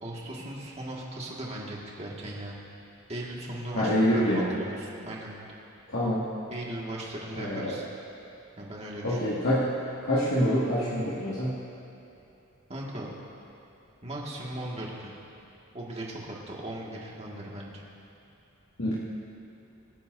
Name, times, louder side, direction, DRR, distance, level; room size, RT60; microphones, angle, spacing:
voice 1, 0.0-2.6 3.1-5.4 6.5-7.9 8.6-9.4 12.7-13.1 14.0-15.1 15.7-17.8, right 1 dB, 30° right, -3 dB, 1.9 m, -38 dB
voice 2, 3.7-4.5 5.9-6.2 7.3-7.7 9.0-9.6 10.0-11.5 18.8-18.9, equal, 60° left, -10 dB, 2.1 m, -26 dB
25.5 x 10.0 x 2.7 m, 2.9 s
head